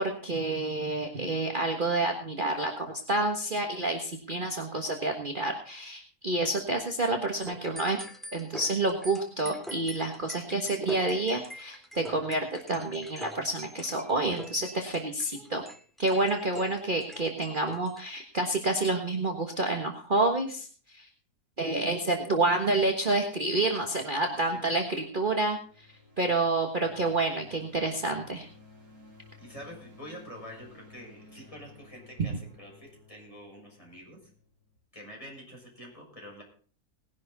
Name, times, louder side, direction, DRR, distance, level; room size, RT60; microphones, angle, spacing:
voice 1, 0.0-8.0 8.3-15.6 16.0-21.1 21.6-25.9 26.2-28.5, right 2 dB, 35° right, 3 dB, 1.5 m, -29 dB
sound 1, 7.4-18.0, equal, ahead, 1.8 m, -44 dB
voice 2, 24.2-24.7 29.4-34.3 34.9-36.4, equal, 20° left, -2 dB, 6.3 m, -46 dB
sound 2, 24.7-34.8, left 3 dB, 75° right, 4.5 m, -56 dB
19.5 x 11.0 x 4.1 m, 0.42 s
omnidirectional pair, 1.6 m